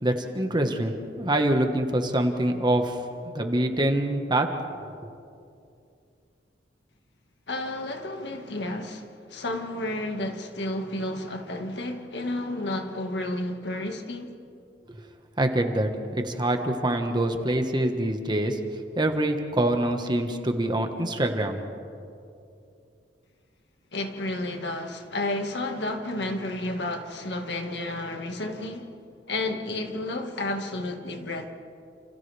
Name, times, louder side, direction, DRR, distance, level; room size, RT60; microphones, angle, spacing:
voice 1, 0.0-3.0 3.3-4.5 15.4-18.6 18.9-21.6, right 1 dB, 25° right, 1.5 m, -25 dB
voice 2, 7.5-14.3 23.9-28.9 29.3-31.5, left 1 dB, 80° left, 1.9 m, -31 dB
30.0 x 28.0 x 3.5 m
head